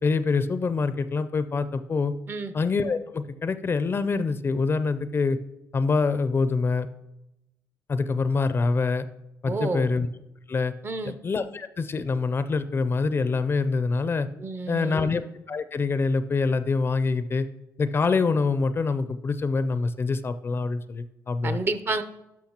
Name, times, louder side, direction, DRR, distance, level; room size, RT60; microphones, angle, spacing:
voice 1, 0.0-2.1 2.5-5.4 5.7-6.9 7.9-9.1 9.4-10.1 10.5-10.7 11.0-14.3 14.7-15.2 15.5-17.4 17.8-21.6, left 4 dB, 35° left, 12 dB, 0.4 m, -25 dB
voice 2, 9.5-9.9 10.8-11.2 14.4-15.1 21.4-22.0, right 3 dB, 35° right, 12 dB, 0.6 m, -30 dB
11.5 x 6.0 x 2.9 m, 0.92 s
cardioid pair, 90°, 7 cm